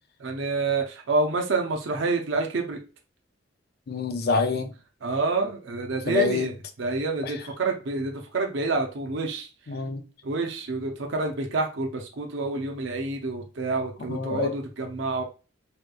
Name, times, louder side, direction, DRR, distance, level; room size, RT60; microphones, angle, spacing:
voice 1, 0.2-2.8 5.0-9.5 10.2-15.2, right 3 dB, 65° right, 0.5 m, -28 dB
voice 2, 3.9-4.7 6.1-6.5 9.7-10.0 14.1-14.5, left 4 dB, 50° left, 0.5 m, -26 dB
3.4 x 2.8 x 2.2 m
head